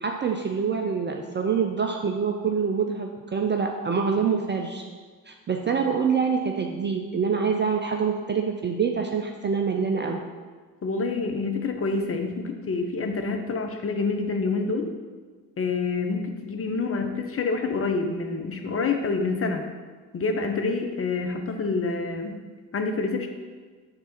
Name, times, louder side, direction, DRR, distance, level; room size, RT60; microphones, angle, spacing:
voice 1, 0.0-4.8 5.3-10.2, right 6 dB, 25° right, 3 dB, 0.5 m, -26 dB
voice 2, 10.8-14.9 15.6-19.6 20.1-22.4 22.7-23.3, left 4 dB, 30° left, 4 dB, 0.8 m, -27 dB
6.7 x 3.5 x 5.8 m, 1.5 s
figure-of-eight pair, 45°, 49 cm